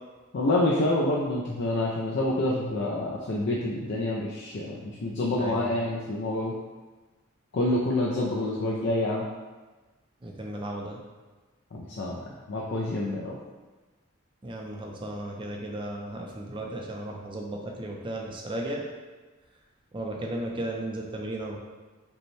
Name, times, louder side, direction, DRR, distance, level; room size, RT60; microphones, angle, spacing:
voice 1, 0.3-6.5 7.5-9.3 11.7-13.4, left 1 dB, 55° left, -3 dB, 0.4 m, -27 dB
voice 2, 5.4-5.8 10.2-11.0 14.4-18.8 19.9-21.6, right 1 dB, 25° right, 0 dB, 0.4 m, -35 dB
5.2 x 2.1 x 3.1 m, 1.3 s
head